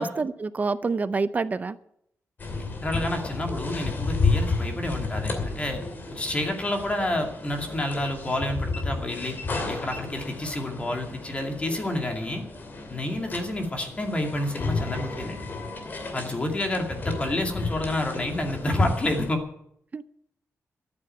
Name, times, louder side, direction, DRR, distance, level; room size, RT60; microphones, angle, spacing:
voice 1, 0.0-1.8 19.9-20.0, right 4 dB, 30° right, 14 dB, 0.6 m, -27 dB
sound 1, 2.4-19.3, left 3 dB, 40° left, 2.6 m, -32 dB
voice 2, 2.8-5.8 6.1-9.4 9.6-12.4 12.9-15.5 16.1-19.4, left 1 dB, 25° left, 3 dB, 2.3 m, -29 dB
13.5 x 9.7 x 8.8 m, 0.72 s
wide cardioid pair, 165°, 5 cm